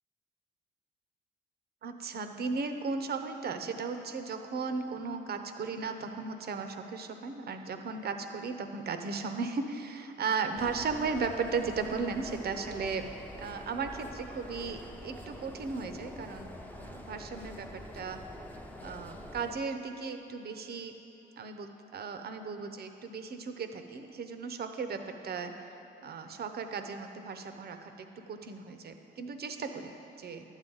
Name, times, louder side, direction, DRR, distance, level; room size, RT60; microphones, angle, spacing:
voice 1, 1.8-13.1 13.3-18.2 18.8-20.9 21.4-25.5 26.0-30.4, right 4 dB, 55° right, 7 dB, 0.8 m, -36 dB
sound 1, 10.6-19.6, left 1 dB, 10° left, 0.7 m, -46 dB
11.5 x 9.1 x 3.9 m, 2.9 s
cardioid pair, 90°, 20 cm